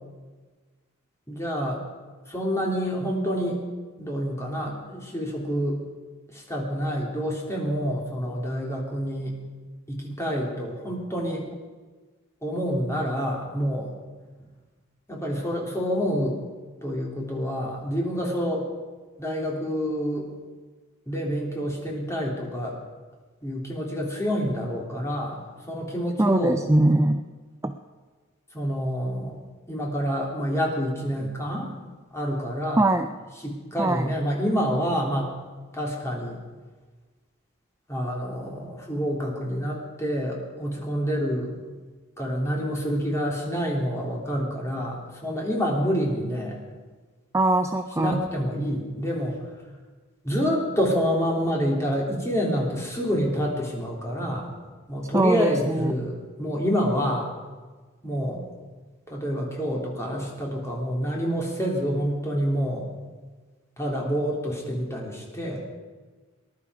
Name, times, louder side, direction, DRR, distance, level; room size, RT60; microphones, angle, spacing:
voice 1, 1.3-1.8 2.3-3.6 4.0-5.8 6.3-9.4 9.9-11.5 12.4-13.9 14.4-14.5 15.1-16.4 16.8-18.7 19.2-20.3 21.1-22.8 23.4-26.6 28.5-29.3 29.7-31.7 32.1-32.9 33.4-35.3 35.7-36.4 37.9-41.5 42.2-46.6 48.0-49.4 50.2-54.5 54.9-57.3 58.0-58.4 59.1-62.9 63.8-65.6, equal, 15° left, -2 dB, 3.1 m, -27 dB
voice 2, 26.2-27.2 27.6-27.7 32.8-33.1 33.8-34.1 47.3-48.2 55.1-55.9, right 2 dB, 15° right, 7 dB, 0.4 m, -21 dB
20.0 x 11.0 x 4.9 m, 1.4 s
head